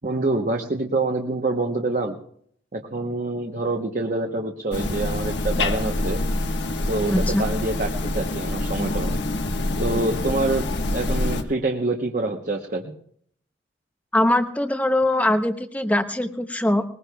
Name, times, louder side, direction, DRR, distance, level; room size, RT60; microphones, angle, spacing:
voice 1, 0.0-2.2 2.7-6.2 6.9-9.2 9.8-10.7 10.9-12.9, right 2 dB, 45° right, 3 dB, 0.9 m, -26 dB
sound 1, 4.7-11.4, left 2 dB, 80° left, 1.3 m, -26 dB
voice 2, 7.1-7.4 14.1-16.8, left 1 dB, 10° left, 8 dB, 0.7 m, -22 dB
21.0 x 20.5 x 2.3 m, 0.66 s
head